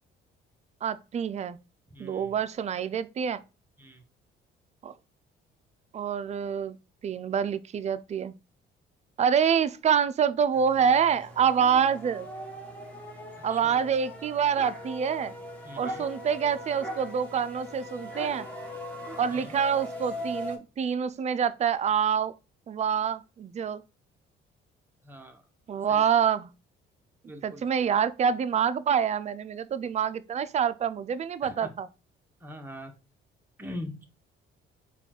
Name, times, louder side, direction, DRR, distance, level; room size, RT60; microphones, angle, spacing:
voice 1, 0.8-1.6 2.0-3.4 4.8-4.9 5.9-6.8 7.0-8.3 9.2-12.3 13.4-15.4 15.8-18.5 19.2-22.3 22.7-23.8 25.7-26.5 27.4-31.9, right 7 dB, 35° right, 0.3 m, -26 dB
voice 2, 1.9-2.3 3.8-4.0 13.5-13.8 15.6-16.1 19.3-19.6 25.0-25.4 25.9-26.0 27.2-27.9 31.4-31.7 32.4-32.9 33.6-34.1, left 1 dB, 10° right, 0.8 m, -42 dB
sound 1, 10.5-20.6, equal, 5° left, 1.2 m, -40 dB
4.1 x 2.3 x 4.2 m
cardioid pair, 90°, 21 cm